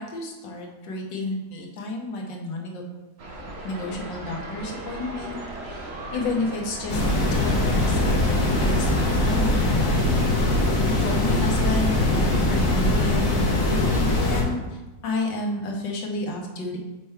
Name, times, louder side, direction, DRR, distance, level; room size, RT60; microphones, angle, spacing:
voice 1, 0.0-2.8 3.6-5.4 5.6-10.0 10.9-14.6 15.0-16.8, left 2 dB, 85° left, 0 dB, 1.6 m, -31 dB
sound 1, 3.2-9.5, right 1 dB, 50° right, 0.8 m, -36 dB
sound 2, 6.9-14.4, left 1 dB, 50° left, 1.5 m, -22 dB
6.7 x 3.5 x 4.4 m, 1.1 s
omnidirectional pair, 1.9 m